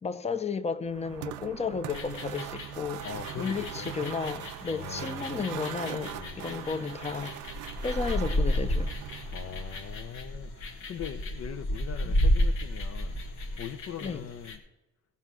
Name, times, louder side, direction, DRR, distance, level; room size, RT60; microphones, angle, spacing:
voice 1, 0.0-3.1 3.4-7.3 7.8-8.9 12.0-12.1 14.0-14.2, left 5 dB, 20° left, 0.7 m, -33 dB
sound 1, 0.8-10.2, right 14 dB, 80° right, 0.4 m, -41 dB
sound 2, 1.9-14.6, left 1 dB, 70° left, 1.7 m, -32 dB
voice 2, 3.0-3.9 4.7-5.4 6.1-6.4 9.3-13.2 13.6-14.6, left 9 dB, 55° left, 0.6 m, -41 dB
16.0 x 5.6 x 6.1 m
cardioid pair, 90°, 30 cm